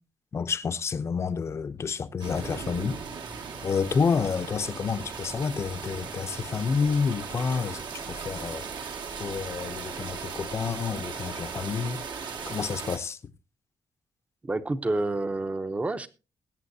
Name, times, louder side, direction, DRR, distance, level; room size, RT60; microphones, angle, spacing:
voice 1, 0.3-3.0 3.6-7.8 8.1-8.7 9.2-13.2, left 5 dB, 35° left, 0.7 m, -29 dB
sound 1, 2.2-13.0, right 5 dB, 70° right, 2.0 m, -37 dB
voice 2, 14.4-16.1, right 2 dB, 15° right, 0.8 m, -28 dB
20.5 x 8.8 x 2.7 m
wide cardioid pair, 155°, 8 cm